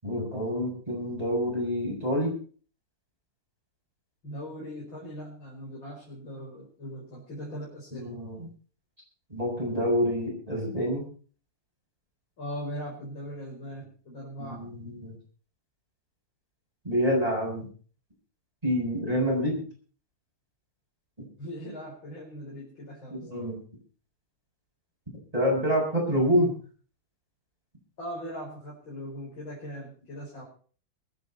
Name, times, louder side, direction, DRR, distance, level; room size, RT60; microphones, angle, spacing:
voice 1, 0.0-2.3 7.9-8.5 9.3-11.0 14.4-15.1 16.8-17.7 18.6-19.6 23.1-23.6 25.3-26.5, equal, 15° right, -3 dB, 6.5 m, -27 dB
voice 2, 4.2-8.1 12.4-14.6 21.4-23.3 28.0-30.4, equal, 65° left, -5 dB, 5.9 m, -40 dB
23.5 x 10.0 x 4.3 m, 0.42 s
omnidirectional pair, 2.3 m